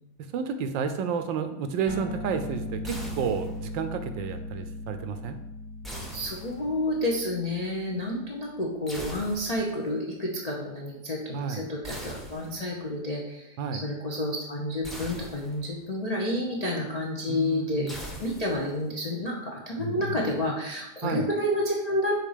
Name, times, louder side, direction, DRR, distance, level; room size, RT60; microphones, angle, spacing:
voice 1, 0.2-5.4 11.3-11.6 13.6-13.8 17.3-18.0 21.0-21.3, right 6 dB, 75° right, 8 dB, 1.2 m, -31 dB
sound 1, 1.9-8.7, left 1 dB, 40° left, 1.4 m, -39 dB
sound 2, 2.8-3.8 5.8-6.9 8.9-9.8 11.8-12.8 14.8-15.8 17.9-18.9, equal, ahead, 0.4 m, -41 dB
voice 2, 6.1-17.9 18.2-22.2, left 1 dB, 65° left, -3 dB, 0.4 m, -30 dB
6.5 x 4.0 x 5.0 m, 0.88 s
omnidirectional pair, 2.2 m